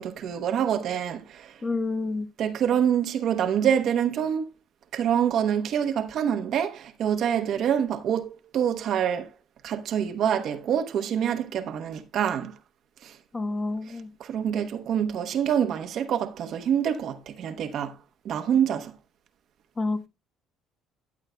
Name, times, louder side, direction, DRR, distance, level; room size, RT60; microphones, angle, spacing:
voice 1, 0.0-1.5 2.4-4.5 4.9-9.3 9.6-12.5 14.2-17.9 18.2-18.9, right 9 dB, 60° right, 1.0 m, -26 dB
voice 2, 1.6-2.3 13.3-14.1 19.8-20.1, left 3 dB, 25° left, 1.1 m, -29 dB
14.5 x 8.1 x 2.2 m
supercardioid pair, 70°, 0 cm